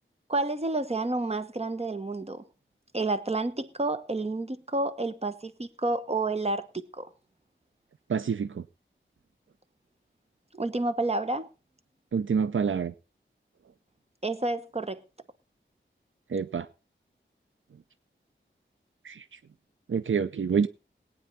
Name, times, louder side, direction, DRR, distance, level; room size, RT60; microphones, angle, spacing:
voice 1, 0.3-2.4 2.9-7.1 10.5-11.5 14.2-15.0, right 2 dB, 30° right, 1.1 m, -30 dB
voice 2, 8.1-8.6 12.1-12.9 16.3-16.7 19.0-19.2 19.9-20.7, right 6 dB, 75° right, 0.5 m, -27 dB
18.5 x 9.1 x 4.1 m
wide cardioid pair, 65°, 20 cm